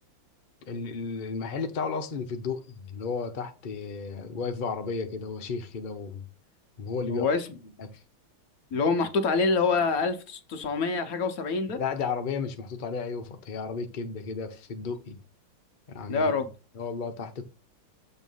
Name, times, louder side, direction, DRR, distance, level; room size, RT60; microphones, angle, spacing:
voice 1, 0.7-6.2 6.8-7.3 7.8-8.0 11.8-15.2 15.9-16.4 16.7-17.5, left 5 dB, 90° left, 0.4 m, -33 dB
voice 2, 7.1-7.4 8.7-11.8 16.1-16.5, left 4 dB, 60° left, 1.0 m, -26 dB
7.1 x 3.2 x 5.4 m
omnidirectional pair, 2.3 m